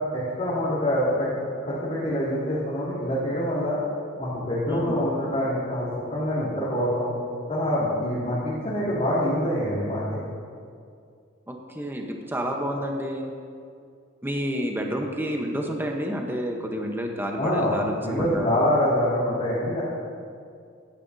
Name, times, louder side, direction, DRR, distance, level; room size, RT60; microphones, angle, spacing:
voice 1, 0.0-1.3 1.7-3.8 4.2-7.1 7.5-10.2 17.4-17.8 18.0-19.8, equal, 35° left, -11 dB, 2.2 m, -25 dB
voice 2, 4.7-5.0 11.5-13.3 14.2-18.5, equal, 10° right, 2 dB, 0.9 m, -29 dB
15.0 x 10.5 x 2.7 m, 2.3 s
head